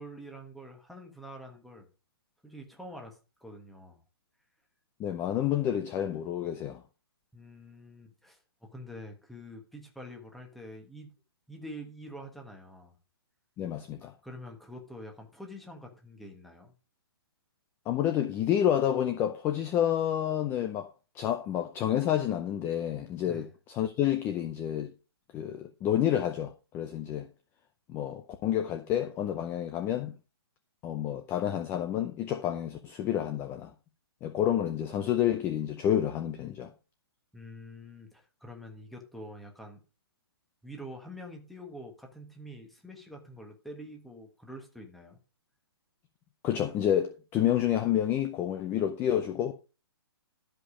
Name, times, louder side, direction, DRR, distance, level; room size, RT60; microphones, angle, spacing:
voice 1, 0.0-1.9 2.4-4.0 7.3-11.1 11.5-13.0 14.0-16.7 23.3-23.5 37.3-39.8 40.6-45.2, equal, ahead, 1.4 m, -46 dB
voice 2, 5.0-6.8 13.6-14.1 17.9-24.9 25.3-27.3 27.9-30.1 30.8-33.7 34.2-36.7 46.4-49.5, left 10 dB, 15° left, 0.6 m, -29 dB
12.5 x 5.2 x 4.9 m
hypercardioid pair, 150°, 13 cm